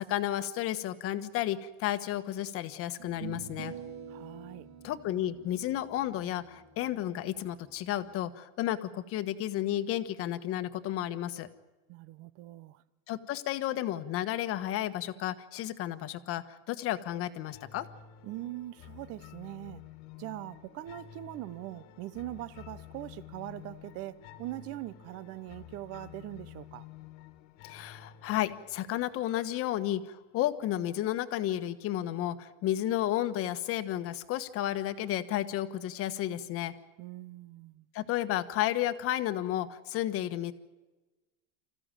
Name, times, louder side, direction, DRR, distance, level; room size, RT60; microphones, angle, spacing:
voice 1, 0.0-3.7 4.8-11.5 13.1-17.8 27.6-36.7 37.9-40.5, left 13 dB, 40° left, 1.3 m, -32 dB
sound 1, 1.9-2.0 3.0-8.3, right 8 dB, 80° right, 3.2 m, -47 dB
voice 2, 4.1-4.7 11.9-12.8 18.2-19.8 20.2-26.9 37.0-37.9, right 15 dB, 45° right, 0.9 m, -42 dB
sound 2, 17.5-30.5, left 11 dB, 60° left, 1.7 m, -51 dB
26.0 x 15.0 x 9.0 m
supercardioid pair, 150°, 34 cm